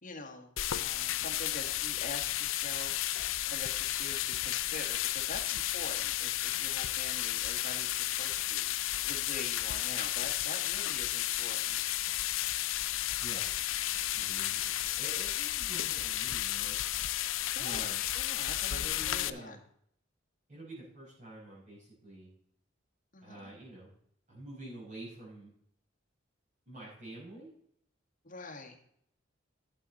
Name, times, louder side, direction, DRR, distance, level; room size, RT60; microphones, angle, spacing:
voice 1, 0.0-2.9 3.4-8.7 9.0-11.8 17.5-19.6 23.1-23.5 28.2-28.9, left 3 dB, 45° left, 3 dB, 1.7 m, -45 dB
sound 1, 0.6-19.3, left 14 dB, 80° left, 0.5 m, -33 dB
voice 2, 14.1-16.8 17.6-18.0 18.7-19.6 20.5-22.3 23.2-23.9 24.3-25.5 26.7-27.5, right 1 dB, 40° right, -7 dB, 5.3 m, -47 dB
12.0 x 7.7 x 4.2 m, 0.69 s
head